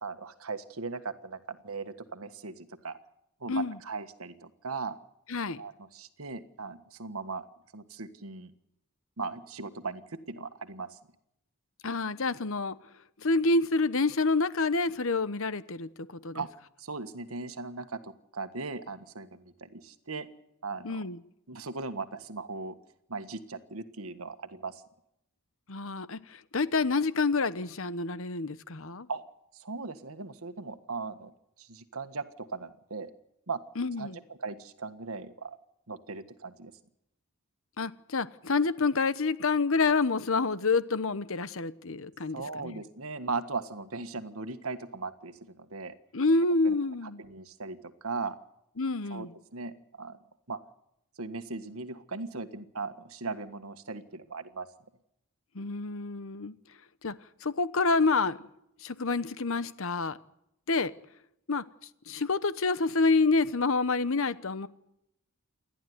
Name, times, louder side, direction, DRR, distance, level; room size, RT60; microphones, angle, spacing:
voice 1, 0.0-3.0 3.4-5.0 5.6-7.5 7.7-8.5 9.2-11.0 16.3-16.5 16.8-20.3 20.6-21.0 21.5-22.8 23.1-24.8 29.1-29.2 29.5-31.3 31.6-33.1 33.5-33.6 34.0-35.6 35.9-36.7 42.3-45.9 46.6-46.7 47.0-48.4 49.1-50.2 50.5-50.6 51.2-54.7, right 4 dB, 70° right, 1.5 m, -38 dB
voice 2, 5.3-5.6 11.8-12.8 13.2-15.9 16.2-16.4 20.8-21.2 25.7-29.1 33.8-34.2 37.8-42.8 46.1-47.2 48.8-49.3 55.5-56.5 57.0-57.1 57.4-58.4 58.8-60.2 60.7-60.9 61.5-61.6 62.1-64.7, left 3 dB, 65° left, 1.0 m, -28 dB
28.5 x 11.5 x 9.5 m
head